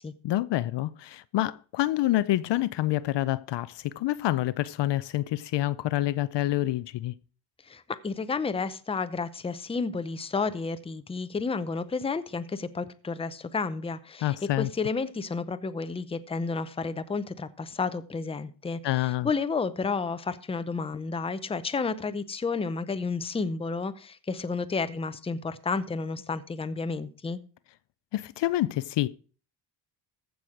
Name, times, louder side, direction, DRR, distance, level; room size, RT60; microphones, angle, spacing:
voice 1, 0.2-7.1 14.2-14.7 18.8-19.3 28.1-29.1, left 15 dB, 60° left, 0.6 m, -27 dB
voice 2, 7.7-18.8 19.2-27.4, left 4 dB, 10° left, 0.6 m, -31 dB
15.0 x 6.2 x 4.9 m
cardioid pair, 135°, 48 cm